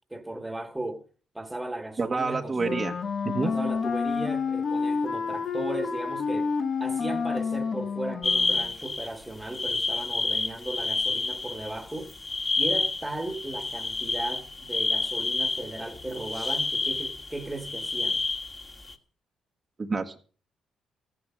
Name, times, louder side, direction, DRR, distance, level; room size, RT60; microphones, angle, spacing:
voice 1, 0.1-1.0 1.3-2.8 3.4-12.1 12.6-18.2, right 2 dB, 10° right, 1.8 m, -36 dB
voice 2, 2.0-2.9 3.2-3.5 19.8-20.2, right 4 dB, 30° right, 1.4 m, -28 dB
Wind instrument woodwind instrument, 2.6-8.8, left 5 dB, 50° left, 1.3 m, -29 dB
sound 1, 8.2-18.9, left 3 dB, 30° left, 2.0 m, -29 dB
14.5 x 11.0 x 6.3 m
cardioid pair, 90°, 0 cm